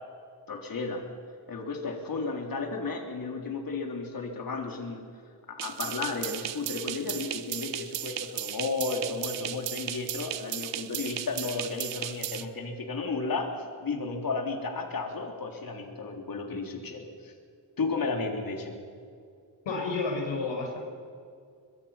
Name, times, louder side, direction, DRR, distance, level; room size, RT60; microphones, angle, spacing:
voice 1, 0.5-1.0 1.5-5.0 5.5-17.3 17.8-18.8, left 3 dB, 50° left, 3 dB, 3.8 m, -33 dB
sound 1, 5.6-12.4, right 11 dB, 70° right, 1.2 m, -36 dB
voice 2, 19.7-20.8, left 3 dB, 70° left, 1 dB, 5.6 m, -30 dB
23.0 x 22.5 x 5.9 m, 2.3 s
cardioid pair, 110°, 46 cm